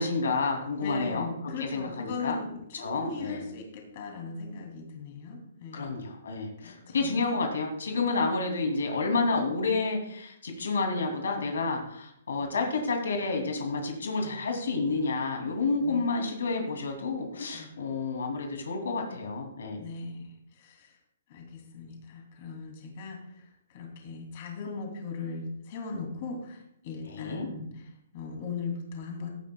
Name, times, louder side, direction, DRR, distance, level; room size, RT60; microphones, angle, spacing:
voice 1, 0.0-1.3 1.6-2.4 2.8-3.4 5.7-19.8 27.0-27.5, left 3 dB, 85° left, 2 dB, 2.7 m, -30 dB
voice 2, 0.8-5.9 6.9-7.2 15.8-16.1 17.5-17.8 19.8-21.0 21.3-29.3, left 4 dB, 35° left, 1 dB, 2.8 m, -39 dB
16.0 x 11.5 x 2.3 m, 0.74 s
hypercardioid pair, 170°, 0 cm